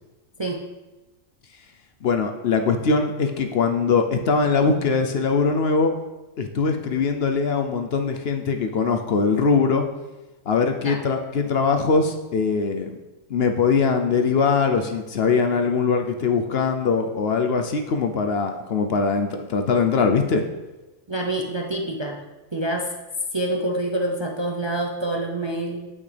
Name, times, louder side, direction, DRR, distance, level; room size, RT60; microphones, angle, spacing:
voice 1, 2.0-5.9 6.4-9.9 10.5-13.0 13.3-20.4, left 5 dB, 60° left, 5 dB, 0.8 m, -21 dB
voice 2, 21.1-22.2 22.5-22.9 23.3-25.9, right 1 dB, 30° right, 1 dB, 0.5 m, -26 dB
8.8 x 8.5 x 3.4 m, 1.1 s
omnidirectional pair, 1.3 m